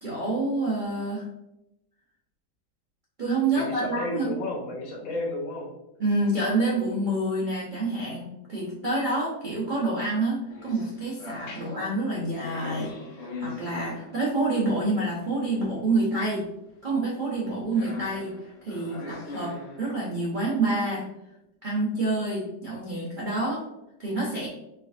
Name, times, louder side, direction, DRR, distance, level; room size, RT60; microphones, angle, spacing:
voice 1, 0.0-1.3 3.2-4.3 6.0-16.5 16.8-18.4 18.6-21.1 21.6-23.7 24.0-24.5, right 2 dB, 60° right, -6 dB, 0.5 m, -27 dB
voice 2, 3.5-5.7 11.5-11.6, left 2 dB, 90° left, -1 dB, 1.8 m, -33 dB
sound 1, 10.5-14.7 15.2-15.3 17.4-17.5 17.7-20.0, left 3 dB, 40° left, 1.0 m, -41 dB
4.4 x 3.3 x 2.6 m, 0.89 s
omnidirectional pair, 2.1 m